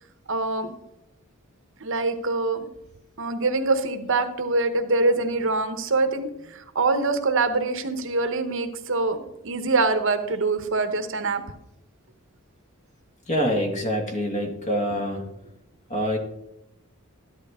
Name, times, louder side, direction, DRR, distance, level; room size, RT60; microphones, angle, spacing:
voice 1, 0.3-0.7 1.8-2.6 3.2-9.2 9.4-11.4, right 3 dB, 60° right, 9 dB, 1.0 m, -24 dB
voice 2, 13.3-15.2 15.9-16.2, equal, 35° left, 3 dB, 1.9 m, -25 dB
13.0 x 11.5 x 3.6 m, 0.87 s
head